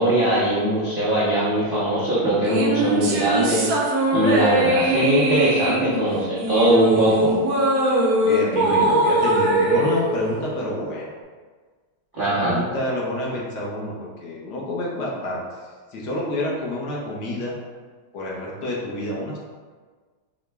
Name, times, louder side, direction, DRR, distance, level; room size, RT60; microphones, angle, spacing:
voice 1, 0.0-3.7 4.1-7.4 12.1-12.6, right 1 dB, 85° right, -10 dB, 0.4 m, -20 dB
sound 1, 2.4-11.0, right 1 dB, 65° right, 1.0 m, -21 dB
voice 2, 8.2-11.1 12.3-15.4 15.9-17.5 18.1-19.4, left 1 dB, 65° left, -4 dB, 1.2 m, -28 dB
4.9 x 2.2 x 3.3 m, 1.4 s
omnidirectional pair, 2.2 m